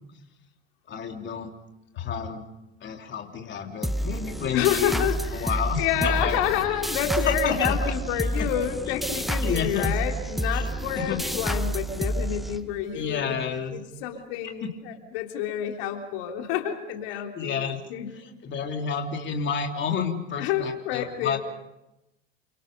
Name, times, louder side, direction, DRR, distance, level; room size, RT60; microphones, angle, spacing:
voice 1, 0.9-1.5 1.9-2.5 2.8-5.1 5.3-6.6 7.2-7.9 8.4-8.5 8.9-9.0 9.4-9.9 10.5-10.7 10.9-11.2 12.9-13.8 14.6-14.7 17.1-17.8 18.1-21.4, left 6 dB, 35° left, 3 dB, 3.4 m, -30 dB
sound 1, 3.8-13.1, equal, ahead, 1.3 m, -29 dB
voice 2, 4.5-13.4 13.7-17.6 17.9-18.1 20.4-21.4, left 9 dB, 65° left, 3 dB, 3.4 m, -29 dB
29.0 x 25.5 x 5.3 m, 0.91 s
hypercardioid pair, 85°, 31 cm